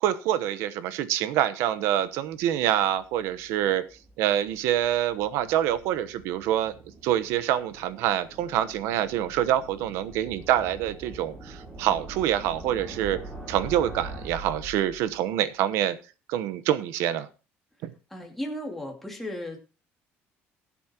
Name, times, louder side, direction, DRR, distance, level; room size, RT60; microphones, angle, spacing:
voice 1, 0.0-3.8 4.2-6.7 7.0-13.2 13.5-16.0 16.3-17.3 17.8-17.9, right 11 dB, 80° right, 13 dB, 1.0 m, -26 dB
sound 1, 2.4-15.3, right 2 dB, 20° right, 3.9 m, -44 dB
voice 2, 18.1-19.6, left 1 dB, 5° left, 1 dB, 2.4 m, -35 dB
20.5 x 8.5 x 2.9 m, 0.33 s
cardioid pair, 170°, 5 cm